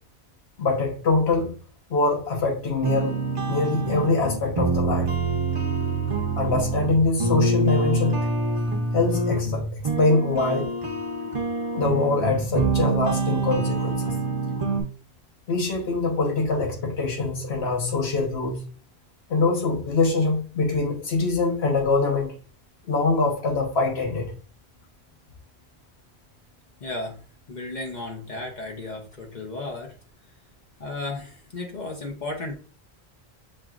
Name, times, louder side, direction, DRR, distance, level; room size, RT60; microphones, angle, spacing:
voice 1, 0.6-1.5 1.9-3.2 3.5-5.1 6.4-8.2 8.9-9.6 10.0-10.7 11.7-14.1 15.5-18.6 19.3-22.3 22.9-24.3, left 3 dB, 75° left, 1.3 m, -23 dB
sound 1, 2.8-14.8, right 3 dB, 35° right, 0.7 m, -26 dB
voice 2, 26.8-27.2 27.5-30.0 30.8-32.6, left 2 dB, 45° left, 0.9 m, -34 dB
7.0 x 2.9 x 2.4 m
omnidirectional pair, 1.1 m